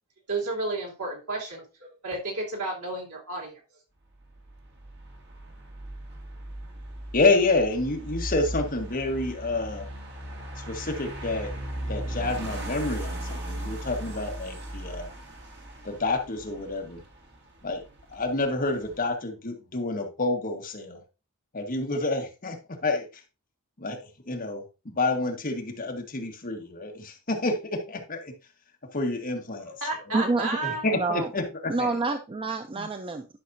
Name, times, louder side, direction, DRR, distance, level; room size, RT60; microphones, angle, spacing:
voice 1, 0.3-3.6 29.7-30.8, right 2 dB, 80° right, -2 dB, 3.0 m, -32 dB
sound 1, 4.3-19.1, right 1 dB, 50° right, 2.0 m, -37 dB
voice 2, 7.1-9.9 10.6-11.5 11.9-15.1 15.8-17.0 17.6-17.8 18.1-21.0 21.5-23.1 23.8-28.3 28.9-29.7 30.1-32.0 32.8-32.9, left 2 dB, 40° left, 2 dB, 1.4 m, -29 dB
voice 3, 30.1-30.5 30.9-31.3 31.7-33.3, right 3 dB, 25° right, 8 dB, 0.4 m, -27 dB
11.0 x 5.9 x 2.6 m, 0.30 s
head